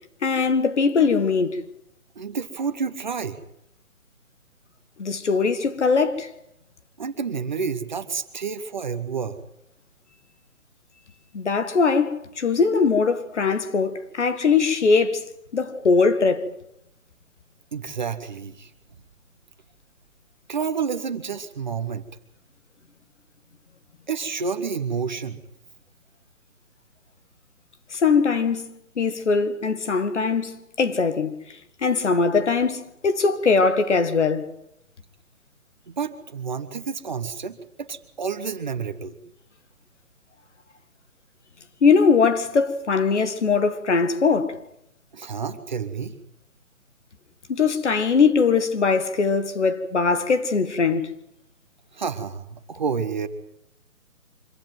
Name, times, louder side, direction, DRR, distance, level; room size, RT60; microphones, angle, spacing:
voice 1, 0.2-1.6 5.0-6.3 11.3-15.3 15.5-16.5 27.9-31.4 31.8-34.5 41.8-44.6 47.5-51.1, left 5 dB, 55° left, 1.8 m, -21 dB
voice 2, 2.2-3.4 7.0-9.4 17.7-18.7 20.5-22.0 24.1-25.4 35.9-39.2 45.1-46.1 51.9-53.3, right 6 dB, 30° right, 1.1 m, -29 dB
25.0 x 15.5 x 9.2 m
hypercardioid pair, 170°, 43 cm